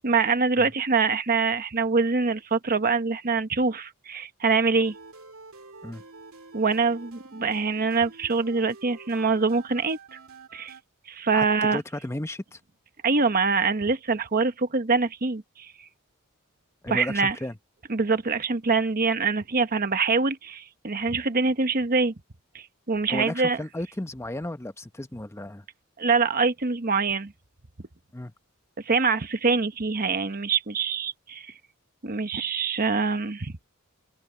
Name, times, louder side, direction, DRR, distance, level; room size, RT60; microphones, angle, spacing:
voice 1, 0.0-4.9 6.5-10.2 10.5-10.7 11.1-11.8 13.0-15.7 16.9-17.3 17.9-22.1 22.5-23.6 26.0-27.3 28.8-31.5 32.0-33.6, right 4 dB, 45° right, 1.2 m, -24 dB
sound 1, 4.8-10.8, right 3 dB, 70° right, 2.8 m, -48 dB
voice 2, 11.3-12.6 16.8-17.6 23.1-25.6 28.1-28.3, left 1 dB, 15° left, 0.8 m, -34 dB
open air
head